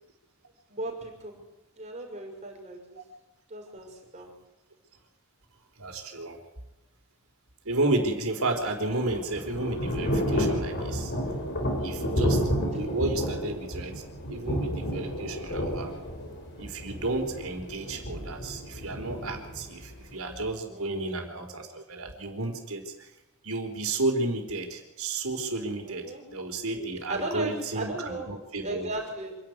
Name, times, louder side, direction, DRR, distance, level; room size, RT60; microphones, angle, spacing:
voice 1, 0.7-1.4 1.8-3.0 3.5-4.4 15.2-15.4 20.7-21.1 25.8-26.2 27.1-28.3 28.6-29.4, right 1 dB, 30° right, 1 dB, 5.7 m, -36 dB
voice 2, 5.8-6.4 7.6-11.1 11.8-15.9 16.6-23.1 23.4-28.9, right 2 dB, 70° right, 4 dB, 4.2 m, -32 dB
Thunder / Rain, 8.6-20.5, equal, 50° left, 4.5 m, -31 dB
26.5 x 11.5 x 9.6 m, 1.0 s
head